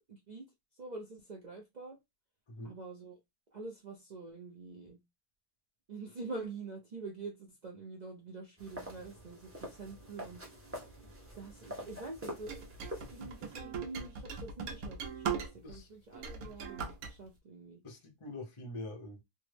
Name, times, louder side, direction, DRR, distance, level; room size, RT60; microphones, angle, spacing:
voice 1, 0.1-0.4 0.8-2.0 2.6-3.2 3.5-5.0 5.9-10.4 11.0-12.6 12.9-17.8, right 3 dB, 60° right, 0.4 m, -46 dB
sound 1, 8.6-13.6, equal, 15° right, 0.6 m, -46 dB
sound 2, 12.5-15.8 16.1-17.1, right 6 dB, 75° right, 1.1 m, -39 dB
voice 2, 17.8-19.2, left 1 dB, 30° left, 0.5 m, -44 dB
3.2 x 2.0 x 3.2 m
omnidirectional pair, 1.6 m